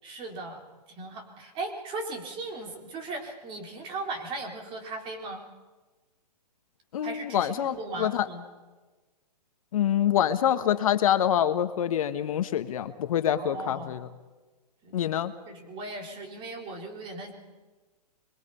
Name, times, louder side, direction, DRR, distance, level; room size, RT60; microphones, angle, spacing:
voice 1, 0.0-0.7 1.0-5.4 7.0-8.4 13.4-13.9 14.8-15.1 15.4-17.3, right 2 dB, 25° right, 3 dB, 3.7 m, -38 dB
voice 2, 6.9-8.3 9.7-14.1 14.9-15.3, left 10 dB, 55° left, 10 dB, 1.3 m, -26 dB
26.5 x 22.5 x 5.6 m, 1.3 s
hypercardioid pair, 145°, 21 cm